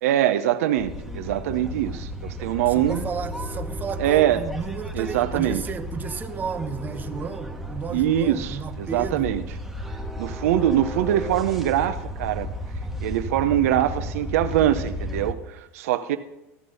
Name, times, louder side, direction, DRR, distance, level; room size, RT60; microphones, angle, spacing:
voice 1, 0.0-3.0 4.0-4.4 4.9-5.6 7.9-9.4 10.2-12.5 13.0-16.2, right 12 dB, 75° right, 0.6 m, -23 dB
sound 1, 0.8-15.3, equal, ahead, 1.3 m, -34 dB
voice 2, 2.7-9.4, right 6 dB, 25° right, 0.9 m, -33 dB
14.0 x 6.1 x 5.4 m
supercardioid pair, 115°, 8 cm